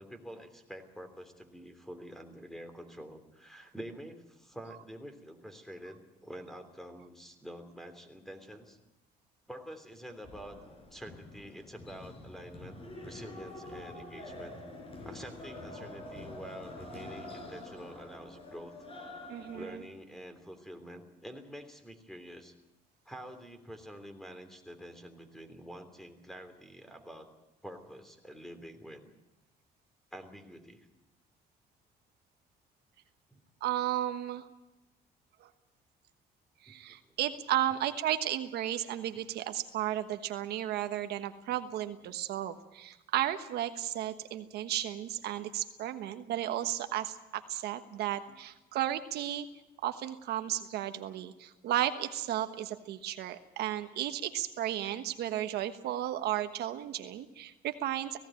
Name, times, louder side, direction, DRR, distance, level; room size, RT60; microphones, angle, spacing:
voice 1, 0.0-8.8 9.5-10.6 10.9-14.5 15.0-18.7 19.5-22.5 23.0-27.3 27.6-29.1 30.1-30.9 33.3-33.4 36.7-37.1 37.7-37.8 41.5-41.6 42.0-42.2 48.3-48.4, equal, ahead, 7 dB, 3.2 m, -47 dB
sound 1, 10.2-19.8, left 2 dB, 35° left, 6.0 m, -46 dB
voice 2, 19.3-19.8 33.6-34.5 35.4-35.5 36.6-49.5 49.8-58.2, right 12 dB, 75° right, 8 dB, 1.3 m, -34 dB
18.0 x 16.5 x 9.1 m, 0.96 s
cardioid pair, 110°, 17 cm